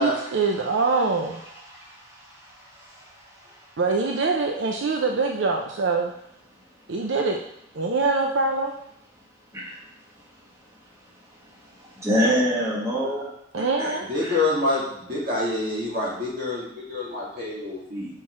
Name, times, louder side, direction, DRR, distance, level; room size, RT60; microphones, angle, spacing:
voice 1, 0.0-1.4 3.8-6.1 6.9-7.4 7.7-8.7 13.5-14.1, right 3 dB, 80° right, 2 dB, 0.6 m, -24 dB
voice 2, 1.5-3.7 9.5-9.8 10.1-10.2 11.5-13.3 13.5-14.4, equal, 15° right, -5 dB, 1.6 m, -28 dB
voice 3, 14.1-18.1, left 2 dB, 50° right, -6 dB, 2.6 m, -26 dB
5.8 x 4.5 x 4.9 m, 0.72 s
head